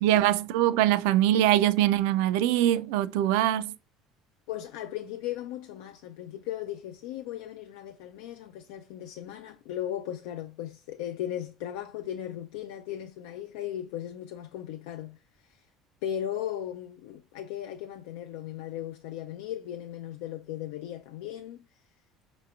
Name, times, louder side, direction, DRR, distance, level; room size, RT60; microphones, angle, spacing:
voice 1, 0.0-3.7, right 13 dB, 85° right, 0.3 m, -23 dB
voice 2, 4.5-15.7 16.0-21.6, left 11 dB, 85° left, 0.3 m, -37 dB
4.9 x 3.0 x 2.2 m
supercardioid pair, 100°, 0 cm